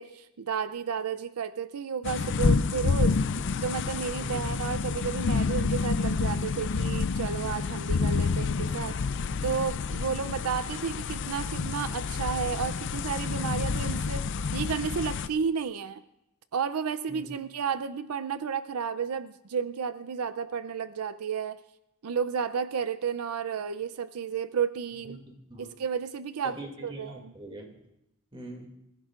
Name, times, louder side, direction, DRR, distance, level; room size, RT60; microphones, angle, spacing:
voice 1, 0.0-3.2 3.6-9.0 9.4-16.0 16.5-21.6 22.0-25.2 25.6-27.3, right 6 dB, 85° right, 12 dB, 0.5 m, -32 dB
sound 1, 2.0-15.3, left 4 dB, 55° left, 0.5 m, -29 dB
voice 2, 25.0-25.7 26.4-27.8 28.3-28.7, right 1 dB, 25° right, 2 dB, 2.4 m, -42 dB
25.5 x 15.5 x 2.5 m, 0.87 s
head